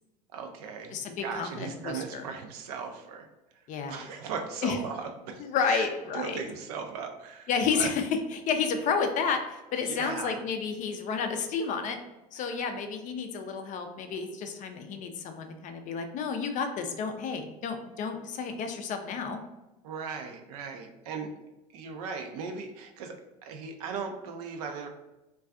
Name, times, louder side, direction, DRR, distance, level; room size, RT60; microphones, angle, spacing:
voice 1, 0.3-3.3 3.9-5.9 6.1-7.9 9.9-10.4 12.4-12.6 19.8-21.3 21.7-24.9, right 5 dB, 70° right, 5 dB, 0.5 m, -38 dB
voice 2, 0.9-2.2 3.7-4.0 4.6-4.8 5.4-6.4 7.5-12.0 12.3-19.4, left 5 dB, 40° left, 6 dB, 0.4 m, -31 dB
2.4 x 2.3 x 2.3 m, 0.99 s
hypercardioid pair, 80°, 21 cm